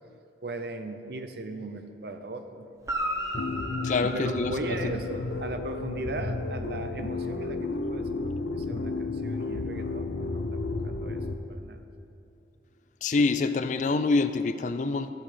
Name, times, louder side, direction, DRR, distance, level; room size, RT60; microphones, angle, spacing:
voice 1, 0.4-2.7 4.1-11.2 11.5-11.8, right 2 dB, 60° right, 7 dB, 0.6 m, -38 dB
Guitar, 2.8-5.4 9.2-9.3, right 1 dB, 15° right, 0.9 m, -35 dB
sound 1, 3.3-11.3, left 3 dB, 70° left, 0.7 m, -32 dB
voice 2, 3.8-4.9 13.0-15.1, left 3 dB, 40° left, 11 dB, 0.3 m, -26 dB
14.5 x 7.5 x 5.1 m, 2.7 s
head